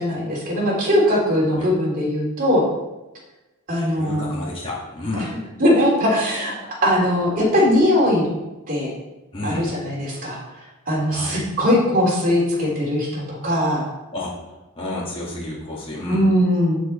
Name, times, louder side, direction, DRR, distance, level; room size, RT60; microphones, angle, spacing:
voice 1, 0.0-2.6 3.7-4.3 5.1-5.3 5.6-6.5 6.8-8.3 8.7-8.9 9.4-10.4 10.9-13.8 16.1-16.8, left 1 dB, 40° right, -4 dB, 3.3 m, -20 dB
voice 2, 3.7-5.3 9.3-9.6 11.1-11.4 14.1-14.3 14.8-16.2, left 2 dB, 25° left, -6 dB, 1.8 m, -30 dB
7.6 x 7.0 x 4.3 m, 1.0 s
head